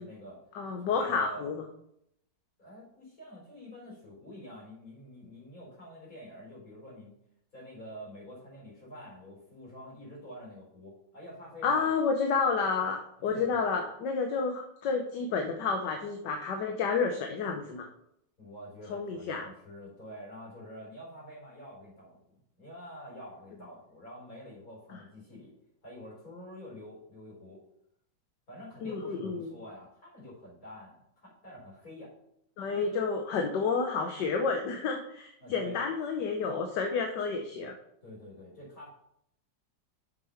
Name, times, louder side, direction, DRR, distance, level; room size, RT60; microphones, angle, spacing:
voice 1, 0.0-0.4 0.9-1.5 2.6-7.1 7.5-11.9 13.3-13.6 18.4-22.2 22.6-25.5 25.8-27.6 28.5-32.1 32.7-33.0 35.4-35.8 38.0-38.9, equal, 50° left, -5 dB, 4.8 m, -47 dB
voice 2, 0.5-1.6 11.6-17.9 18.9-19.5 24.9-25.0 28.8-29.5 32.6-37.7, left 5 dB, 75° left, 4 dB, 1.5 m, -30 dB
6.8 x 6.6 x 5.7 m, 0.76 s
omnidirectional pair, 1.9 m